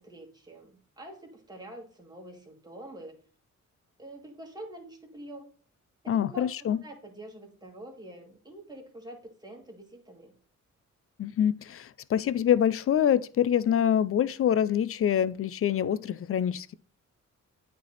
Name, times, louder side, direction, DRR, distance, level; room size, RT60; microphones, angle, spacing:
voice 1, 0.0-3.2 4.0-5.5 6.0-10.3, right 1 dB, 15° right, 1.8 m, -46 dB
voice 2, 6.1-6.8 11.2-16.7, left 9 dB, 45° left, 0.4 m, -25 dB
8.9 x 3.5 x 4.0 m
cardioid pair, 95°, 31 cm